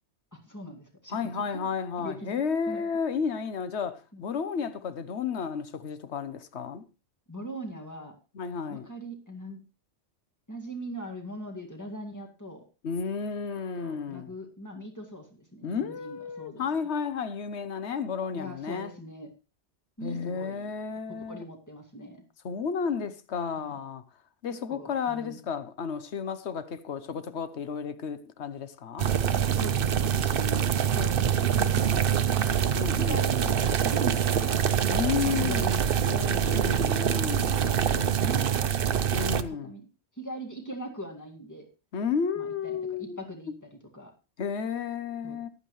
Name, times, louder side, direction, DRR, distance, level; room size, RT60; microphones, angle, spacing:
voice 1, 0.3-1.4 2.0-2.8 4.1-4.2 7.3-8.2 8.7-9.6 10.5-12.6 13.8-16.7 18.3-19.3 20.0-20.7 21.3-22.2 23.6-23.8 24.7-25.4 29.3-32.5 32.8-34.6 34.9-36.6 37.2-38.9 39.3-39.8 40.2-41.7 42.4-44.1 45.2-45.4, right 1 dB, 15° left, 2.1 m, -41 dB
voice 2, 1.1-6.8 8.3-8.9 12.8-14.3 15.6-18.9 20.0-21.4 22.4-24.0 24.4-29.1 32.7-33.2 34.9-35.7 36.0-37.5 39.1-39.7 41.9-43.2 44.4-45.5, left 6 dB, 75° left, 1.2 m, -32 dB
sound 1, 29.0-39.4, right 8 dB, 60° right, 0.8 m, -25 dB
14.5 x 11.0 x 3.2 m
omnidirectional pair, 1.2 m